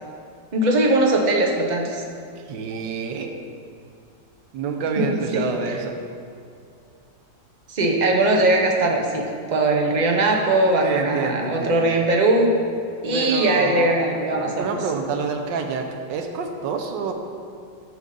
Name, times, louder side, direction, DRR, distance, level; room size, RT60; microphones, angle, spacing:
voice 1, 0.5-2.0 5.0-5.1 5.3-5.7 7.7-12.5 13.0-14.7, right 2 dB, 50° right, 0 dB, 0.5 m, -20 dB
voice 2, 2.3-3.3 4.5-5.9 10.8-11.9 13.1-13.9 14.6-17.1, right 5 dB, 85° right, 3 dB, 1.4 m, -27 dB
11.0 x 5.3 x 3.9 m, 2.4 s
omnidirectional pair, 1.9 m